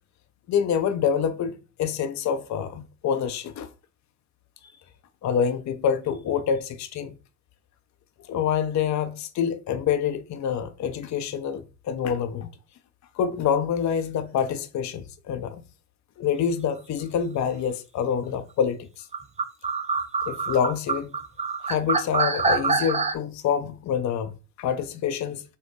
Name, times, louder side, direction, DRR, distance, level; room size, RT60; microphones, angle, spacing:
voice 1, 0.5-1.5 1.8-3.7 5.2-7.1 8.3-12.5 13.2-15.6 16.2-19.1 20.3-21.1 21.6-24.3 24.6-25.4, left 7 dB, 40° left, 0.6 m, -26 dB
sound 1, 19.1-23.2, right 4 dB, 15° right, 0.5 m, -25 dB
4.3 x 2.2 x 3.1 m
hypercardioid pair, 55°, 43 cm